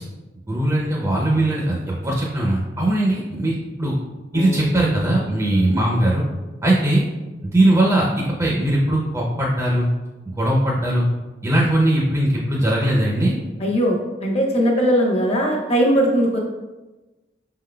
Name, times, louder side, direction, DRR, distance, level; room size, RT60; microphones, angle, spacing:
voice 1, 0.5-3.9 4.3-6.2 6.6-7.0 7.4-9.9 10.4-11.0 11.4-13.3, right 1 dB, 15° right, -4 dB, 0.5 m, -20 dB
Bass guitar, 4.3-7.4, left 4 dB, 70° right, 0.7 m, -38 dB
voice 2, 13.6-16.4, equal, 35° left, -1 dB, 0.8 m, -19 dB
5.6 x 3.7 x 2.2 m, 1.2 s
head